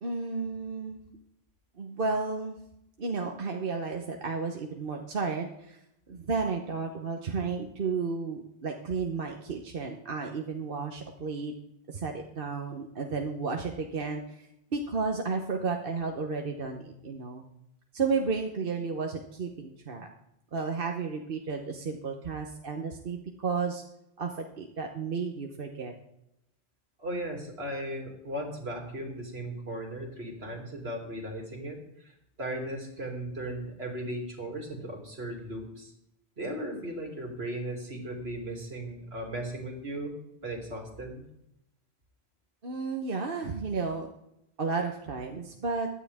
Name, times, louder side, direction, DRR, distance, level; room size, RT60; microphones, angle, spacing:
voice 1, 0.0-1.0 1.8-2.6 3.0-5.8 6.1-11.5 11.9-14.5 14.7-17.4 17.9-20.1 20.5-23.8 24.2-25.9 42.6-44.1 44.6-45.9, right 4 dB, 60° right, 3 dB, 1.2 m, -32 dB
voice 2, 27.0-35.9 36.4-40.1 40.4-41.2, right 1 dB, 80° right, 1 dB, 2.9 m, -37 dB
16.0 x 11.0 x 3.6 m, 0.81 s
omnidirectional pair, 1.1 m